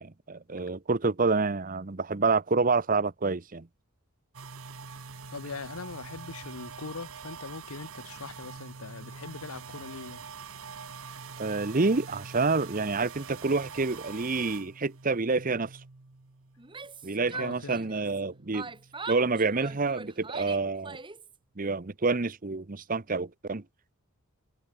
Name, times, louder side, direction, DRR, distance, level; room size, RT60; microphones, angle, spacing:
voice 1, 0.0-3.7 11.4-15.7 17.0-18.7 19.1-21.0 21.6-23.6, right 3 dB, 40° right, 0.9 m, -28 dB
sound 1, 4.3-17.1 17.4-19.8, right 5 dB, 70° right, 1.2 m, -45 dB
voice 2, 5.3-10.3 17.3-17.8, left 4 dB, 80° left, 1.0 m, -41 dB
Yell, 16.6-18.2 18.5-21.4, right 4 dB, 20° right, 1.8 m, -41 dB
head